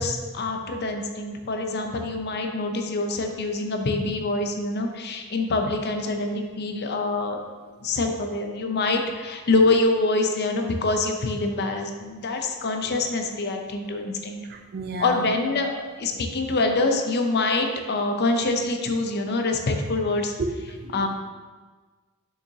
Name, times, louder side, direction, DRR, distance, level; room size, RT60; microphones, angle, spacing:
voice 1, 0.0-7.4 7.8-14.4 15.0-20.3 20.9-21.1, left 2 dB, 45° left, 4 dB, 0.6 m, -25 dB
voice 2, 14.4-15.4 20.4-21.1, right 2 dB, 45° right, 4 dB, 0.5 m, -32 dB
6.6 x 5.6 x 2.7 m, 1.4 s
head